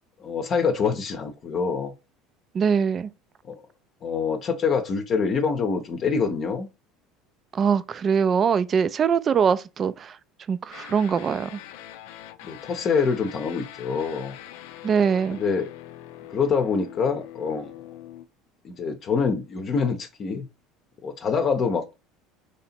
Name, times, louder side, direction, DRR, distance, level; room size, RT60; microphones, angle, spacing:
voice 1, 0.2-1.9 3.4-3.6 4.0-6.7 12.4-14.4 15.3-15.7 16.3-17.8 18.6-20.5 21.0-21.9, left 5 dB, 45° left, 0.7 m, -25 dB
voice 2, 2.5-3.1 7.5-10.2 10.5-11.6 14.8-15.4, right 6 dB, 40° right, 0.4 m, -22 dB
sound 1, 10.7-18.3, left 12 dB, 80° left, 0.4 m, -43 dB
3.2 x 2.8 x 4.2 m
supercardioid pair, 90°, 0 cm